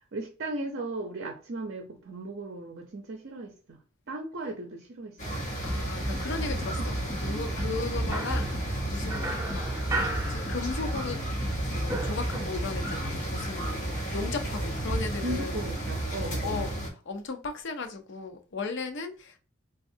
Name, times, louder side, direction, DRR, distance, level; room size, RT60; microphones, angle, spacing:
voice 1, 0.1-3.8 4.1-5.4 6.8-6.9 15.2-16.7, right 2 dB, 55° right, 0.6 m, -37 dB
sound 1, 5.2-16.9, right 1 dB, 40° left, 1.1 m, -32 dB
voice 2, 5.6-9.3 9.5-9.6 10.1-11.3 11.7-13.8 14.1-15.6 16.4-19.4, left 4 dB, 60° left, 0.6 m, -36 dB
sound 2, 5.7-13.2, left 1 dB, 5° left, 0.9 m, -35 dB
sound 3, 8.1-11.1 11.4-12.9, right 2 dB, 15° right, 0.6 m, -36 dB
4.3 x 2.3 x 2.7 m
head